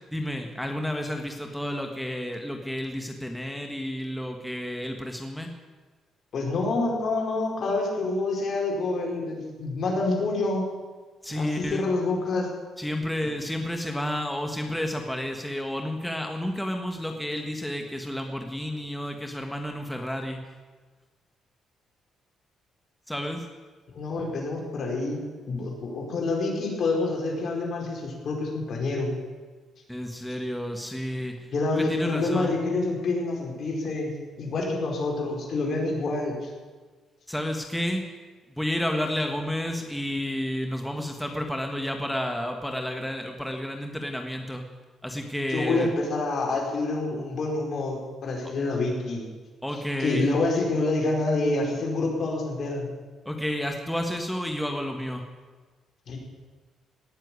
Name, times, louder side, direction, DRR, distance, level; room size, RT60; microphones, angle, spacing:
voice 1, 0.1-5.5 11.2-11.8 12.8-20.4 23.1-23.5 29.9-32.6 37.3-38.1 38.5-44.6 45.0-45.9 49.6-50.4 53.2-55.3, left 1 dB, 5° left, 3 dB, 1.6 m, -31 dB
voice 2, 6.3-10.6 11.3-12.5 23.9-25.2 25.5-29.1 31.5-36.5 45.5-49.2 50.0-52.9 56.1-56.2, left 2 dB, 55° left, 0 dB, 4.6 m, -27 dB
18.0 x 7.4 x 9.7 m, 1.4 s
cardioid pair, 90°, 0 cm